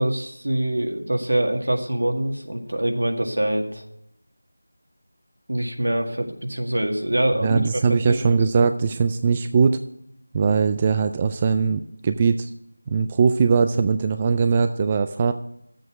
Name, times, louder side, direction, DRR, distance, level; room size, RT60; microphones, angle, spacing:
voice 1, 0.0-3.8 5.5-8.4, right 1 dB, 75° right, 3 dB, 1.9 m, -24 dB
voice 2, 7.4-9.8 10.3-12.5 12.9-15.3, right 5 dB, 20° right, 9 dB, 0.3 m, -20 dB
11.0 x 7.7 x 6.1 m, 0.76 s
figure-of-eight pair, 170°, 0 cm